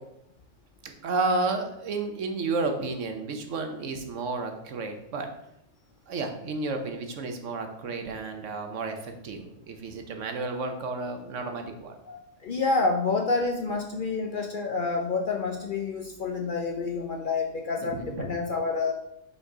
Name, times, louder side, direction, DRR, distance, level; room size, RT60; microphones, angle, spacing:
voice 1, 0.8-5.3 6.1-12.0 17.8-18.4, right 3 dB, 65° right, 5 dB, 1.2 m, -32 dB
voice 2, 12.1-18.9, left 4 dB, 50° left, 1 dB, 0.6 m, -28 dB
5.6 x 4.1 x 4.9 m, 0.81 s
omnidirectional pair, 1.4 m